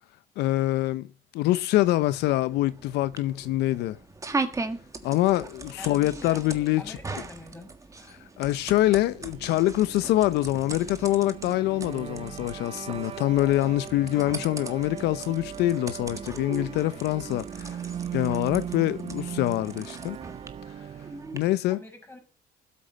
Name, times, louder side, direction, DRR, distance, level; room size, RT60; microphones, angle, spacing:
voice 1, 0.4-1.1 1.3-4.0 5.0-7.0 8.4-17.8 18.1-20.2 21.3-21.8, left 15 dB, 85° left, 0.6 m, -25 dB
sound 1, 1.8-21.4, right 3 dB, 20° right, 1.6 m, -39 dB
voice 2, 5.8-6.4 6.8-7.7 21.7-22.2, left 1 dB, 15° left, 5.7 m, -44 dB
sound 2, 8.5-21.5, right 9 dB, 35° right, 0.5 m, -39 dB
12.5 x 8.4 x 6.4 m
cardioid pair, 110°, 17 cm